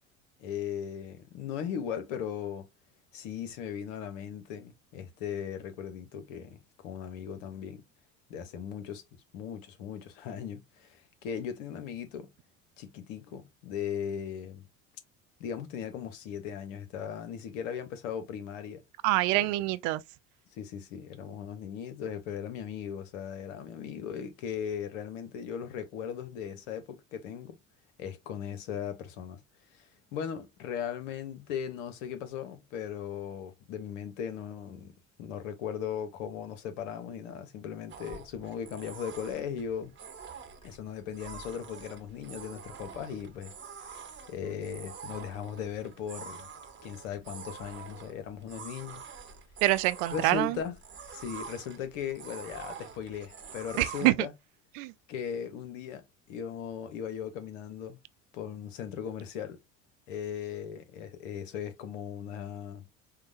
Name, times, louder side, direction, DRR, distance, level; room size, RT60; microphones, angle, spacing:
voice 1, 0.4-2.7 3.1-7.8 8.3-9.0 9.3-12.3 12.8-14.7 15.4-18.8 19.3-19.5 20.6-27.6 28.0-29.4 29.7-29.8 30.1-39.9 40.6-43.5 43.9-44.0 44.3-46.5 46.8-49.0 50.1-50.7 51.1-54.3 55.1-58.0 58.3-59.6 60.1-62.8, left 8 dB, 70° left, 0.9 m, -38 dB
voice 2, 19.0-20.0 49.6-50.6 53.8-54.3 54.8-54.9, right 18 dB, 55° right, 0.4 m, -26 dB
sound 1, 37.9-54.1, right 6 dB, 30° right, 1.0 m, -46 dB
4.8 x 2.2 x 2.5 m
hypercardioid pair, 65°, 39 cm